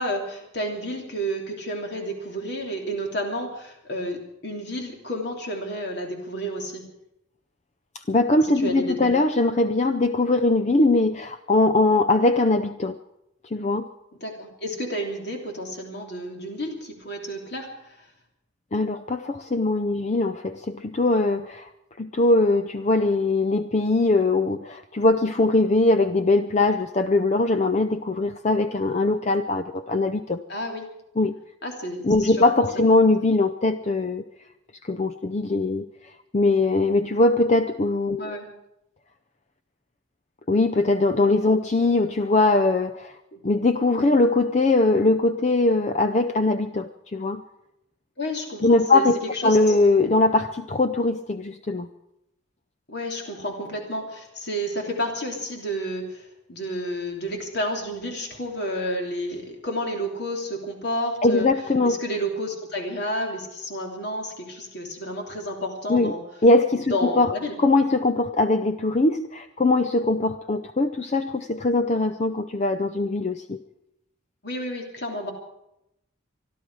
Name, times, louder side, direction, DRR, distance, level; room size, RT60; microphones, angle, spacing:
voice 1, 0.0-6.8 8.4-9.1 14.2-18.1 30.5-30.8 31.6-32.5 38.2-38.5 43.3-43.4 48.2-49.8 52.9-61.5 61.8-66.2 66.7-67.6 74.4-75.3, equal, 55° left, 1 dB, 3.1 m, -31 dB
voice 2, 7.9-13.0 13.5-13.9 18.7-21.7 22.0-30.4 31.2-31.3 32.0-34.3 34.8-35.9 36.3-38.4 40.5-43.1 43.4-47.4 48.6-49.2 49.4-51.9 61.2-62.0 65.9-66.1 66.4-67.3 67.6-73.6, left 2 dB, 35° left, 9 dB, 0.5 m, -21 dB
25.0 x 12.0 x 4.8 m, 0.84 s
head